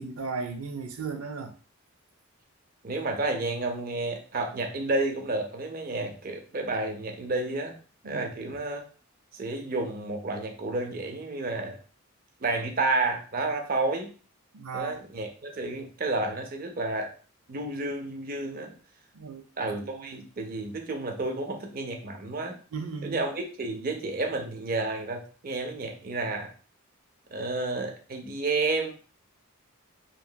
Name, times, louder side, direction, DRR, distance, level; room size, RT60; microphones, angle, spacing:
voice 1, 0.0-1.5 8.0-8.5 14.5-15.0 19.1-19.4 19.8-20.1 22.7-23.2, right 4 dB, 85° right, 0.5 m, -36 dB
voice 2, 2.8-7.8 8.0-8.9 9.3-11.8 12.4-14.1 14.7-17.1 17.5-18.7 19.6-22.6 23.0-26.5 27.3-28.9, right 2 dB, 40° right, 0.5 m, -31 dB
2.9 x 2.8 x 2.2 m
head